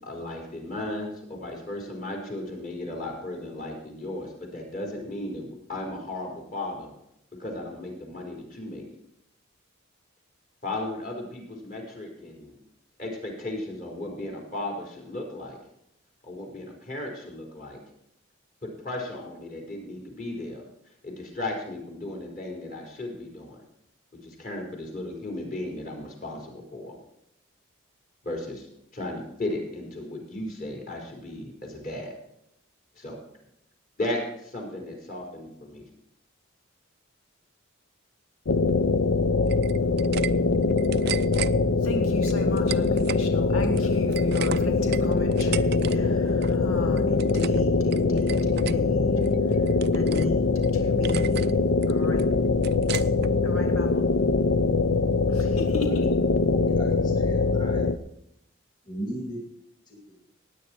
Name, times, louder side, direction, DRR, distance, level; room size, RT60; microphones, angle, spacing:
voice 1, 0.0-6.9 7.4-8.8 10.6-12.6 13.0-15.6 16.2-17.8 18.6-20.6 21.0-23.6 24.2-27.0 28.2-28.7 28.9-32.1 32.9-33.2 34.0-35.8, left 1 dB, 40° left, 0 dB, 4.4 m, -35 dB
sound 1, 38.5-58.0, left 3 dB, 70° left, 0.7 m, -23 dB
sound 2, 39.5-40.3 40.6-41.5 42.2-43.2 43.6-46.0 46.2-46.6 46.9-47.6 47.9-48.8 49.2-50.3 50.6-50.7 51.0-51.5 51.8-53.3, right 11 dB, 50° right, 0.4 m, -36 dB
voice 2, 41.8-51.6 51.9-52.3 52.9-53.0 53.4-54.1 55.3-56.2, left 2 dB, 85° left, 3 dB, 1.6 m, -34 dB
voice 3, 56.8-57.8 58.9-59.4 59.9-60.3, right 1 dB, 20° left, 1 dB, 2.2 m, -37 dB
16.5 x 9.7 x 4.5 m, 0.78 s
head